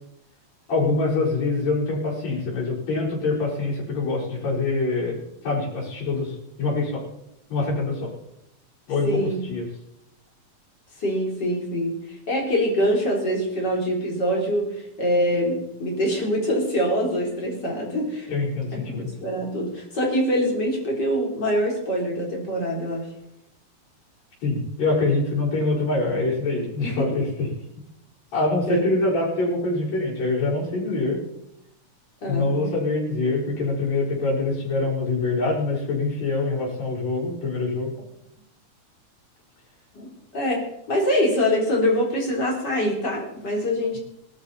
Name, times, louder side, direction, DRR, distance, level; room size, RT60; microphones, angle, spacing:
voice 1, 0.7-5.2 5.4-7.0 7.5-8.1 8.9-9.1 9.4-9.7 18.3-19.1 24.4-27.5 28.3-31.2 32.3-37.9, left 3 dB, 60° left, -7 dB, 6.4 m, -24 dB
voice 2, 9.0-9.4 11.0-12.0 12.3-18.3 18.9-23.1 26.8-27.2 28.7-28.8 32.2-32.7 39.9-44.0, equal, 35° left, -2 dB, 4.6 m, -24 dB
19.5 x 13.0 x 4.3 m, 0.80 s
omnidirectional pair, 3.4 m